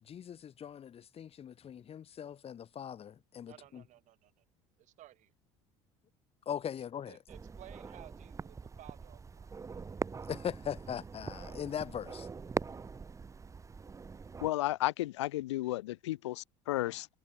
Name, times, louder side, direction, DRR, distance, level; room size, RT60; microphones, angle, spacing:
voice 1, 0.0-3.8 6.5-7.2 10.3-12.3, left 9 dB, 45° left, 4.3 m, -40 dB
voice 2, 3.5-4.4 4.8-5.3 7.1-9.5, right 14 dB, 55° right, 7.6 m, -56 dB
sound 1, 7.3-14.5, right 5 dB, 20° right, 0.8 m, -42 dB
voice 3, 14.4-17.1, left 16 dB, 85° left, 0.7 m, -33 dB
hypercardioid pair, 75°, 15 cm